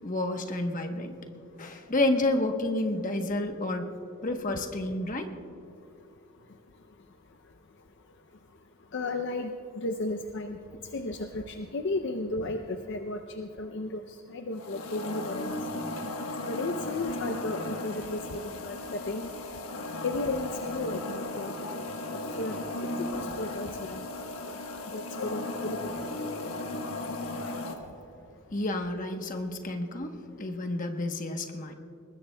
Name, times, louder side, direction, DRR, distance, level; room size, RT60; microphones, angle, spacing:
voice 1, 0.0-1.2 1.6-3.9 4.2-5.3 23.1-23.2 23.7-23.8 28.5-31.7, left 2 dB, 40° left, 5 dB, 1.0 m, -30 dB
voice 2, 8.9-10.6 10.9-15.6 16.4-19.3 20.0-21.6 22.4-22.6 23.1-24.0 24.4-24.5 24.9-25.9, left 2 dB, 55° left, 5 dB, 0.5 m, -34 dB
sound 1, 14.5-27.7, left 2 dB, 85° left, 1.2 m, -36 dB
21.0 x 19.5 x 2.3 m, 2.6 s
head